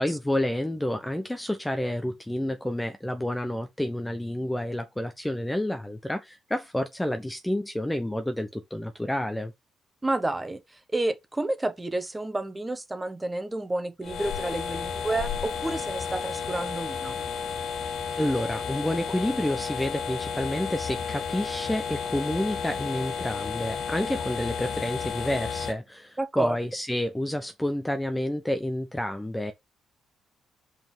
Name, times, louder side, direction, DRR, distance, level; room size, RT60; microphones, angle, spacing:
voice 1, 0.0-9.5 18.2-29.5, left 1 dB, 10° left, 1.0 m, -29 dB
voice 2, 10.0-10.6 10.9-17.1 26.2-26.6, right 2 dB, 15° right, 1.4 m, -30 dB
sound 1, 14.0-25.7, left 6 dB, 65° left, 1.8 m, -32 dB
5.6 x 5.3 x 4.5 m
cardioid pair, 90°, 0 cm